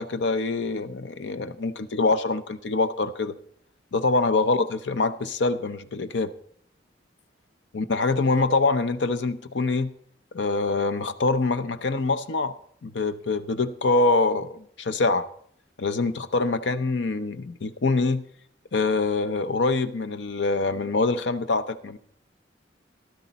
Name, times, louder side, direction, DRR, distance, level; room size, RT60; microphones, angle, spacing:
voice 1, 0.0-3.3 3.9-6.3 7.7-9.9 10.3-12.5 12.8-15.3 15.8-18.2 18.7-22.0, left 3 dB, 80° left, 12 dB, 0.7 m, -25 dB
14.5 x 12.0 x 4.1 m, 0.62 s
head